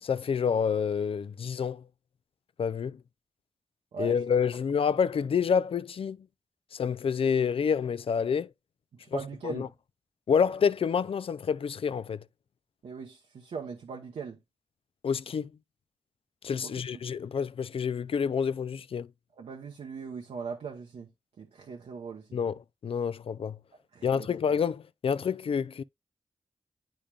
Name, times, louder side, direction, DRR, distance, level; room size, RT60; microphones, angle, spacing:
voice 1, 0.0-1.8 2.6-3.0 4.0-6.3 6.7-8.5 9.1-9.7 10.3-12.2 15.0-15.5 16.4-19.1 22.3-23.6 24.0-25.8, left 6 dB, 60° left, 0.3 m, -28 dB
voice 2, 8.9-9.7 12.8-14.4 16.6-17.2 19.4-21.1 21.4-22.4 23.9-24.3, right 5 dB, 85° right, 0.9 m, -40 dB
8.7 x 5.1 x 2.3 m
wide cardioid pair, 75°, 11 cm